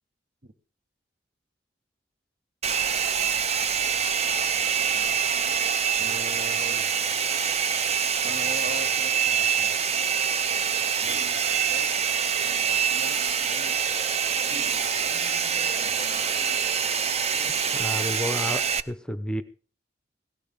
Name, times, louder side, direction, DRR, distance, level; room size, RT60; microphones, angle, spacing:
Domestic sounds home sounds, 2.6-18.8, right 7 dB, 35° right, 0.6 m, -25 dB
voice 1, 6.0-6.9 8.2-9.8 11.0-11.9 12.3-13.8 14.4-15.2 15.8-16.1 16.4-16.5, equal, 55° right, 8 dB, 1.5 m, -42 dB
voice 2, 17.7-19.4, left 1 dB, 5° left, 10 dB, 0.7 m, -31 dB
18.0 x 16.0 x 3.6 m, 0.40 s
head